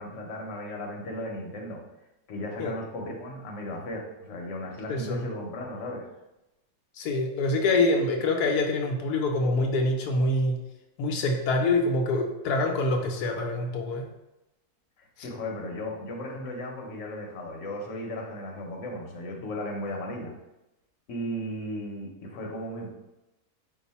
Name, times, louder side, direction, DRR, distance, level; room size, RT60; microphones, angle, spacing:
voice 1, 0.0-1.8 2.3-6.1 15.0-20.3 21.1-22.9, left 1 dB, 60° left, 0 dB, 1.1 m, -36 dB
voice 2, 4.9-5.2 6.9-10.6 11.0-14.1 15.2-15.3, left 2 dB, 85° left, 2 dB, 1.1 m, -25 dB
4.9 x 2.6 x 4.1 m, 0.95 s
omnidirectional pair, 1.6 m